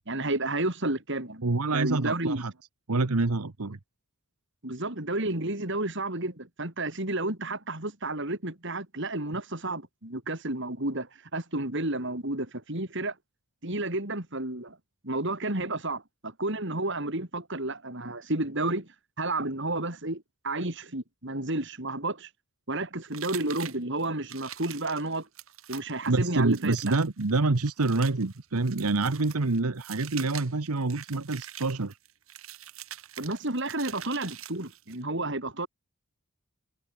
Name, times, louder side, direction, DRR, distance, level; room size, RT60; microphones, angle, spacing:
voice 1, 0.1-1.4 1.7-2.4 4.6-13.2 13.6-14.8 15.0-18.9 19.2-22.3 22.7-25.3 25.7-26.9 33.2-35.7, right 2 dB, 55° right, 3.8 m, -31 dB
voice 2, 1.4-2.5 2.9-3.8 26.1-32.0, right 3 dB, 85° right, 1.1 m, -27 dB
sound 1, 23.1-35.0, right 11 dB, 70° right, 5.2 m, -44 dB
head